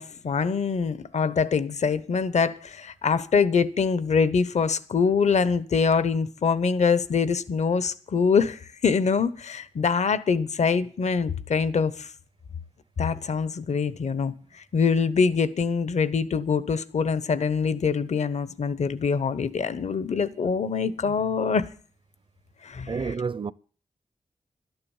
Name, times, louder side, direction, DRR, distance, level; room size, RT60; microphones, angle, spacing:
voice 1, 0.0-12.1 13.0-14.3 14.7-21.6 22.6-22.9, left 5 dB, 70° left, 0.9 m, -24 dB
voice 2, 22.9-23.5, right 5 dB, 45° right, 0.6 m, -29 dB
12.5 x 10.5 x 7.2 m
cardioid pair, 70°, 12 cm